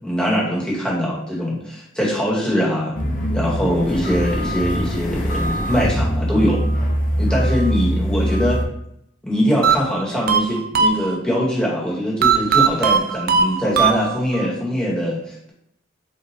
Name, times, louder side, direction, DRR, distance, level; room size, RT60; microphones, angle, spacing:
voice 1, 0.0-2.9 3.3-6.6 7.2-8.6 9.2-15.5, equal, 5° left, -6 dB, 1.2 m, -22 dB
sound 1, 2.9-8.6, equal, 40° left, 0.7 m, -22 dB
sound 2, 9.6-11.4 12.2-14.5, right 6 dB, 50° right, 0.3 m, -18 dB
5.4 x 2.3 x 3.1 m, 0.76 s
head